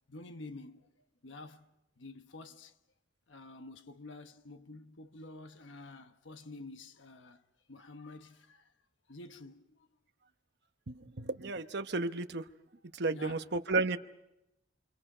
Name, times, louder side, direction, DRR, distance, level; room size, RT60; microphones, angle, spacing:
voice 1, 0.1-0.9 1.2-2.8 3.3-7.4 7.7-8.7 9.1-9.9 13.1-13.5, left 2 dB, 85° left, 1.1 m, -49 dB
voice 2, 10.9-12.5 12.9-14.0, right 3 dB, 60° right, 1.0 m, -33 dB
28.5 x 26.5 x 5.0 m
head